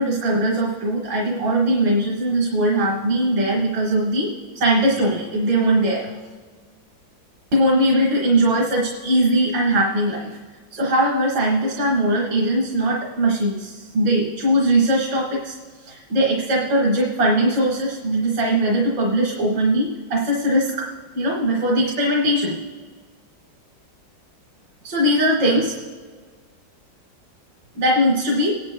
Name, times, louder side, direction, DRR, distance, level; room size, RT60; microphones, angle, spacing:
voice 1, 0.0-6.2 7.5-10.4 10.7-20.9 21.1-22.5 24.8-25.8 27.8-28.5, right 1 dB, 65° right, -4 dB, 2.2 m, -20 dB
26.0 x 10.5 x 2.2 m, 1.5 s
omnidirectional pair, 2.1 m